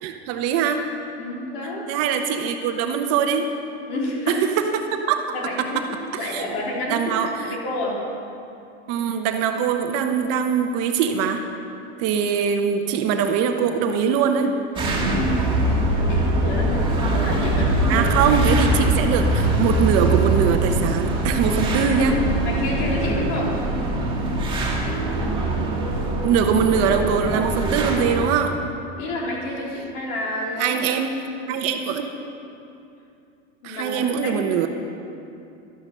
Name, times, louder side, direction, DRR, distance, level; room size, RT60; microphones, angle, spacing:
voice 1, 0.0-0.9 1.9-3.5 4.3-4.4 4.9-5.2 5.6-5.7 6.3-6.5 6.9-7.5 8.9-11.4 12.0-14.5 17.9-22.2 26.2-28.6 30.6-31.1 31.5-32.1 33.6-34.7, right 7 dB, 45° right, 5 dB, 1.1 m, -22 dB
voice 2, 1.2-1.9 3.9-4.5 5.3-5.6 6.2-8.0 15.2-18.4 22.4-23.6 29.0-30.8 31.4-31.6 33.6-34.4, left 1 dB, 55° left, -3 dB, 4.1 m, -29 dB
sound 1, 14.7-28.3, right 1 dB, 15° right, 2.2 m, -22 dB
12.5 x 11.0 x 6.8 m, 2.7 s
supercardioid pair, 135°, 35 cm